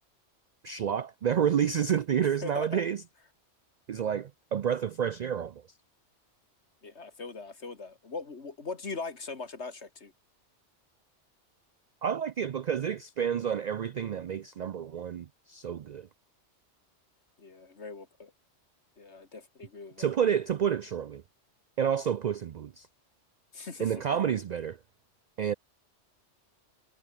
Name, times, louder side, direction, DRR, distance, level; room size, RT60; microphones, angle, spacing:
voice 1, 0.6-3.0 3.9-5.6 12.0-16.1 20.0-21.2 21.8-22.9 23.8-24.8 25.4-25.5, right 8 dB, 60° right, 0.4 m, -29 dB
voice 2, 2.4-2.8 6.8-10.1 17.4-18.3 19.0-20.1 23.5-24.0, left 4 dB, 65° left, 2.6 m, -41 dB
omnidirectional pair, 1.2 m